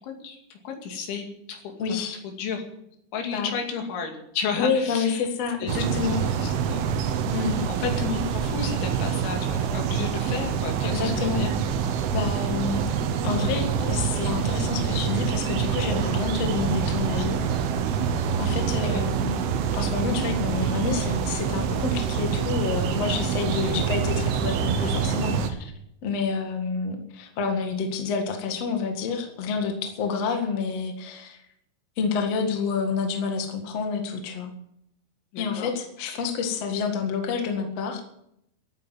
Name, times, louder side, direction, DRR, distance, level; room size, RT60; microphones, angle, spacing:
voice 1, 0.0-2.6 3.1-5.3 5.6-6.1 6.4-6.9 7.7-11.5 18.8-19.0 35.3-35.7 36.1-36.2, left 5 dB, 75° left, 3 dB, 4.7 m, -33 dB
voice 2, 1.8-2.2 3.3-3.5 4.6-6.2 7.3-7.6 10.8-11.4 12.1-12.8 13.2-17.4 18.4-19.4 19.7-25.7 26.0-31.4 32.0-34.5 35.4-38.0, left 5 dB, 50° left, 4 dB, 2.1 m, -28 dB
sound 1, 5.7-25.5, right 7 dB, 85° right, 3.8 m, -26 dB
14.0 x 9.1 x 9.6 m, 0.77 s
omnidirectional pair, 5.5 m